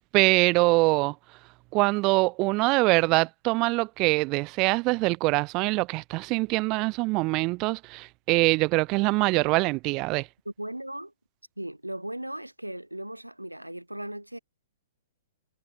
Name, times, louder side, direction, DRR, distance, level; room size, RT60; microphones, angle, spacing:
voice 1, 0.1-1.1 1.7-10.3, right 25 dB, 35° right, 0.4 m, -24 dB
voice 2, 10.5-11.1 11.6-14.4, right 1 dB, 90° right, 2.1 m, -37 dB
figure-of-eight pair, 110°, 0 cm